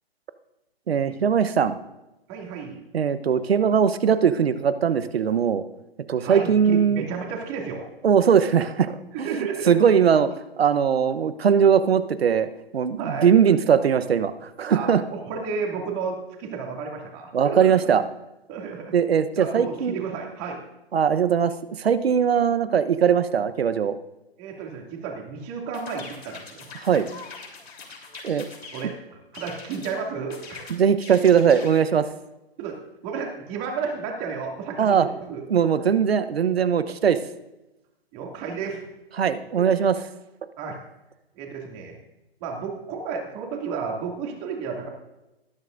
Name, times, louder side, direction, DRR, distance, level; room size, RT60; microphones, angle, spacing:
voice 1, 0.9-1.8 2.9-5.6 6.1-7.1 8.0-10.3 10.6-15.0 17.3-18.0 18.9-20.0 20.9-21.5 21.8-24.0 26.8-27.1 28.2-28.5 30.7-32.0 34.8-35.1 35.5-37.2 39.2-39.9, right 7 dB, 75° right, 13 dB, 1.0 m, -20 dB
voice 2, 2.3-2.9 6.2-7.9 9.1-9.7 13.0-13.3 14.7-17.8 18.5-18.9 19.4-20.6 24.4-26.7 28.7-30.6 31.5-31.7 32.6-32.8 33.0-35.4 38.1-38.8 39.6-39.7 40.6-40.8 41.4-42.0 42.4-44.9, right 5 dB, 30° right, 1 dB, 2.5 m, -32 dB
sound 1, 25.7-28.9 29.3-30.0 30.3-31.9, left 4 dB, 85° left, 3.5 m, -42 dB
19.5 x 10.5 x 2.6 m, 0.96 s
hypercardioid pair, 140°, 31 cm